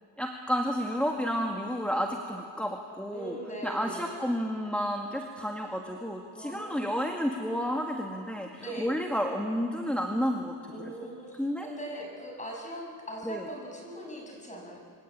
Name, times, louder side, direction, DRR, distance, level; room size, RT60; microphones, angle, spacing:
voice 1, 0.2-3.4 3.6-10.7 11.4-11.7 13.2-13.5, equal, 5° left, 1 dB, 1.9 m, -31 dB
voice 2, 3.1-4.1 6.3-7.1 8.6-9.0 10.7-14.8, right 1 dB, 20° left, 0 dB, 7.5 m, -41 dB
27.0 x 24.5 x 8.7 m, 2.3 s
cardioid pair, 125°, 38 cm